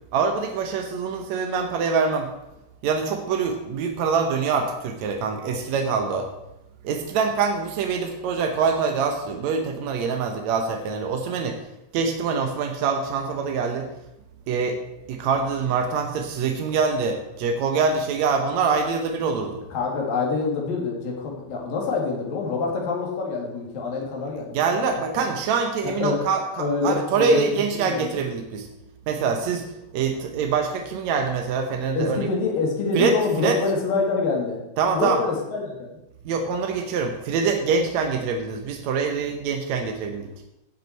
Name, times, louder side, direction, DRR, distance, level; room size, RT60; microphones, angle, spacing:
voice 1, 0.1-2.3 2.8-6.3 6.8-11.6 11.9-13.9 14.5-14.8 15.1-19.6 24.5-28.7 29.1-32.2 32.9-33.6 34.8-35.2 36.3-40.3, right 5 dB, 75° right, 4 dB, 1.6 m, -24 dB
voice 2, 19.7-24.8 25.1-25.2 26.0-26.3 26.6-28.2 31.9-34.6 34.9-36.0, left 4 dB, 70° left, -1 dB, 3.5 m, -26 dB
15.5 x 5.6 x 4.5 m, 0.90 s
omnidirectional pair, 4.3 m